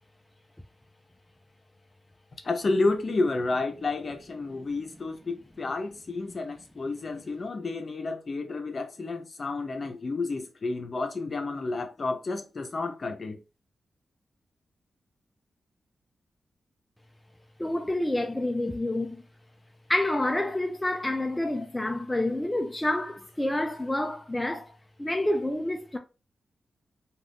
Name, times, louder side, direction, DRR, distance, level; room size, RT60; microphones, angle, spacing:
voice 1, 2.4-13.4, left 3 dB, 50° left, 0.6 m, -30 dB
voice 2, 17.6-19.2 19.9-26.0, left 1 dB, 15° left, 0.4 m, -28 dB
2.5 x 2.4 x 3.4 m
cardioid pair, 75°, 0 cm